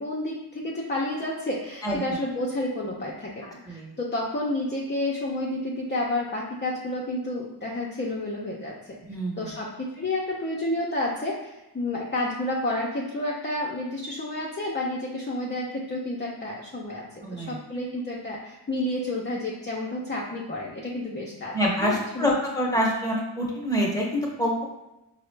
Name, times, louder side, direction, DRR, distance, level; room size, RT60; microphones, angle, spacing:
voice 1, 0.0-8.7 9.4-17.1 17.3-22.3, left 1 dB, 25° left, -3 dB, 0.5 m, -30 dB
voice 2, 9.1-9.5 17.2-17.5 21.5-24.6, equal, 10° left, -2 dB, 0.9 m, -26 dB
4.7 x 2.1 x 3.2 m, 0.94 s
wide cardioid pair, 110°, 42 cm